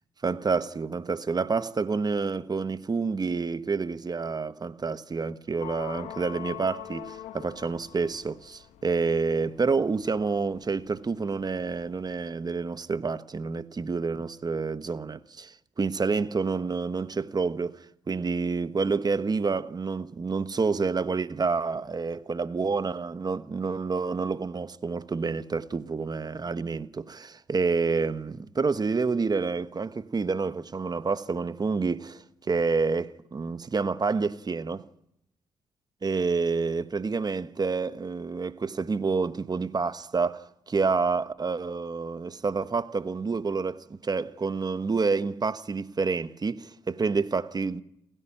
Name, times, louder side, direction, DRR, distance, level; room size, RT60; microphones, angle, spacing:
voice 1, 0.2-34.8 36.0-47.8, right 4 dB, 35° right, 1.2 m, -28 dB
sound 1, 5.6-12.1, left 12 dB, 85° left, 1.5 m, -44 dB
29.5 x 11.0 x 10.0 m
supercardioid pair, 60°, 11 cm